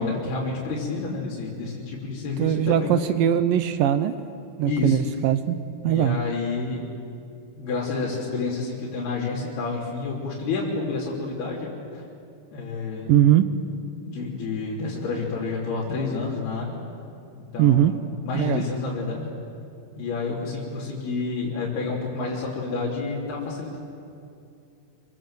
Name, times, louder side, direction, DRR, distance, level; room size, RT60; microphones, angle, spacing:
voice 1, 0.0-2.9 4.6-5.0 5.8-6.9 7.6-12.0 12.5-13.1 14.0-16.7 17.5-18.0 18.3-19.3 20.0-23.8, left 4 dB, 80° left, -6 dB, 5.3 m, -29 dB
voice 2, 2.4-4.1 4.6-5.6 5.8-6.2 13.1-13.5 17.6-17.9 18.3-18.7, right 11 dB, 75° right, 11 dB, 2.3 m, -20 dB
29.0 x 23.5 x 7.7 m, 2.6 s
omnidirectional pair, 4.5 m